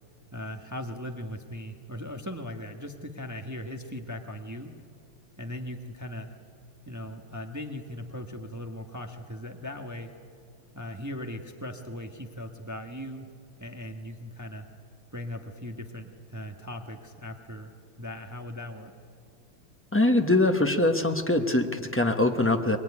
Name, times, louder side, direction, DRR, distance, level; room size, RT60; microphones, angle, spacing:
voice 1, 0.3-4.7 5.4-6.3 6.9-10.1 10.7-13.3 13.6-14.7 15.1-17.7 18.0-18.9, left 1 dB, 10° right, 4 dB, 1.0 m, -38 dB
voice 2, 19.9-22.8, left 2 dB, 15° left, 5 dB, 0.4 m, -23 dB
23.0 x 22.0 x 9.8 m, 2.3 s
omnidirectional pair, 2.3 m